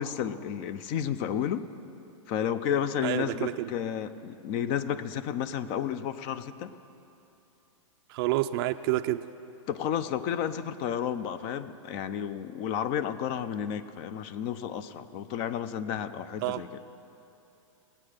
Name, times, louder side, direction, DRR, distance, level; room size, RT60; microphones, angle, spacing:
voice 1, 0.0-1.7 2.3-6.7 9.7-16.7, left 9 dB, 35° left, 13 dB, 0.5 m, -32 dB
voice 2, 3.0-3.7 8.1-9.2 16.4-16.6, right 16 dB, 45° right, 7 dB, 0.4 m, -28 dB
18.0 x 8.7 x 6.5 m, 2.8 s
hypercardioid pair, 140°, 17 cm